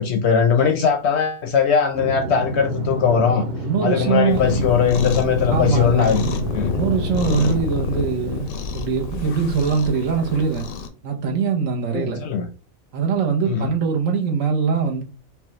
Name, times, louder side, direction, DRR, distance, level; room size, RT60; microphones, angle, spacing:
voice 1, 0.0-3.4 3.8-6.2 6.5-6.7 7.4-7.5 11.9-12.5 13.5-13.7, left 6 dB, 65° left, 0.8 m, -20 dB
sound 1, 1.9-7.6, right 1 dB, 35° right, 1.1 m, -29 dB
voice 2, 3.6-4.7 5.5-6.4 6.7-10.7 11.0-12.2 12.9-15.0, right 6 dB, 75° right, 1.3 m, -22 dB
Cat, 4.3-10.9, left 6 dB, 85° left, 1.1 m, -28 dB
5.2 x 2.3 x 3.0 m
omnidirectional pair, 1.4 m